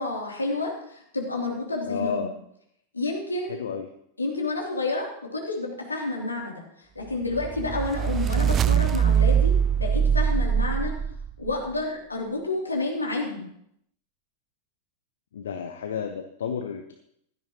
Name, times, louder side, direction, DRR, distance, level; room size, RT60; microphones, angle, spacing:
voice 1, 0.0-2.3 2.9-3.6 4.2-10.9 11.4-13.5, left 2 dB, 80° left, -1 dB, 3.1 m, -30 dB
voice 2, 1.8-2.3 3.5-3.9 15.3-16.9, left 6 dB, 65° left, 6 dB, 1.0 m, -31 dB
sound 1, 7.3-11.6, right 8 dB, 25° right, 0.4 m, -22 dB
16.5 x 12.5 x 3.0 m, 0.73 s
figure-of-eight pair, 90°, 0 cm